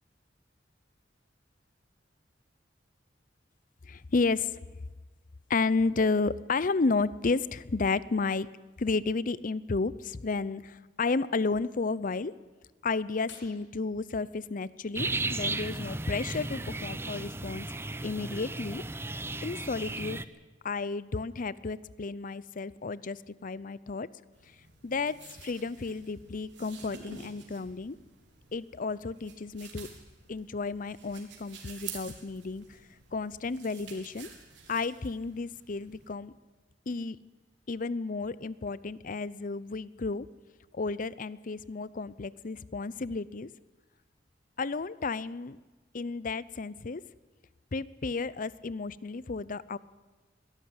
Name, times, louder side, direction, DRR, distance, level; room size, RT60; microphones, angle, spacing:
voice 1, 3.8-4.6 5.5-8.5 8.8-12.3 12.8-18.8 19.4-20.2 20.6-24.1 24.8-28.0 28.5-29.9 30.3-32.8 33.1-34.3 34.7-36.3 36.9-37.2 37.7-40.3 40.7-43.5 44.6-45.6 45.9-47.0 47.7-49.8, left 4 dB, 50° left, 19 dB, 0.6 m, -32 dB
sound 1, 13.3-13.7 16.3-16.9 17.2-17.3 17.7-17.9, left 3 dB, 80° left, 7.0 m, -53 dB
sound 2, 15.0-20.2, right 2 dB, 15° right, 0.7 m, -35 dB
sound 3, 24.3-36.1, right 6 dB, 80° right, 3.8 m, -50 dB
22.0 x 13.0 x 9.7 m, 1.3 s
head